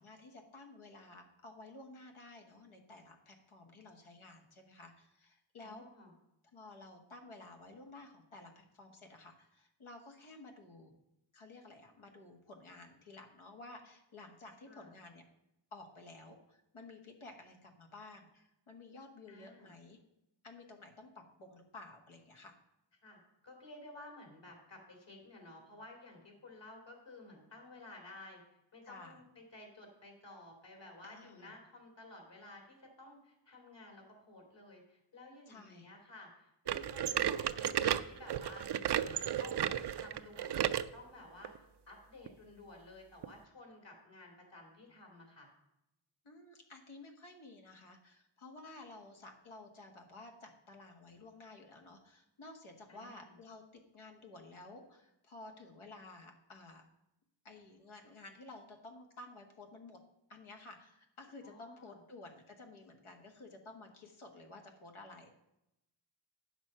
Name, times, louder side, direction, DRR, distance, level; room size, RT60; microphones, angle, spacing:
voice 1, 0.0-5.8 6.5-10.9 11.3-15.2 15.7-20.0 20.4-22.6 28.8-29.2 31.0-31.5 35.5-35.9 46.2-56.8 57.4-60.0 60.3-65.3, left 2 dB, 80° left, 2 dB, 1.6 m, -53 dB
voice 2, 5.6-6.1 14.6-14.9 19.3-19.7 23.0-28.4 28.7-38.6 39.0-45.5 52.9-53.3 61.4-62.0, left 2 dB, 60° left, 2 dB, 3.0 m, -54 dB
sound 1, 36.7-40.9 41.4-41.6 42.3-42.4 43.2-43.3, right 10 dB, 55° right, 0.5 m, -33 dB
8.9 x 6.1 x 5.5 m, 0.86 s
cardioid pair, 55°, 48 cm